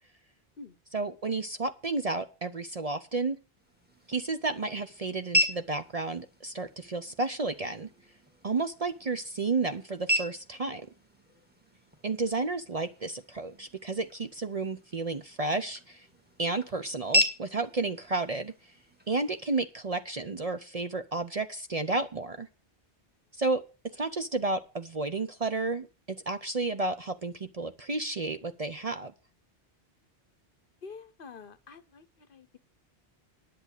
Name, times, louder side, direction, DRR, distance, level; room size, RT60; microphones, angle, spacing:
voice 1, 0.9-3.4 4.1-7.9 8.4-10.9 12.0-16.1 16.4-18.7 19.1-22.5 23.3-23.6 23.9-29.1, right 3 dB, 40° right, 0.7 m, -32 dB
sound 1, 3.6-19.6, equal, 10° right, 1.8 m, -36 dB
voice 2, 30.8-32.0 32.3-32.6, left 4 dB, 55° left, 0.9 m, -47 dB
10.5 x 7.7 x 6.5 m
omnidirectional pair, 1.1 m